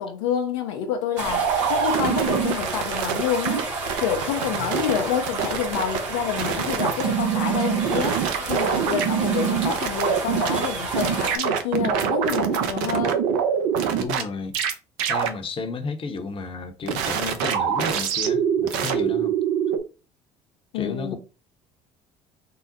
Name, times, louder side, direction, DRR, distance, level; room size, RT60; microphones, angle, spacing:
voice 1, 0.0-3.7 4.0-8.2 8.5-13.2 20.7-21.2, left 8 dB, 80° left, 0.6 m, -28 dB
sound 1, 1.2-11.4, right 3 dB, 90° right, 1.0 m, -31 dB
sound 2, 1.3-3.6 3.9-5.0 5.3-6.0 6.4-10.7 10.9-14.2 14.5-14.7 15.0-15.3 16.9-19.8, right 8 dB, 75° right, 0.6 m, -24 dB
voice 2, 14.0-14.5 15.1-19.3 20.7-21.2, left 4 dB, 35° left, 0.8 m, -32 dB
3.8 x 2.1 x 3.9 m
hypercardioid pair, 65°, 15 cm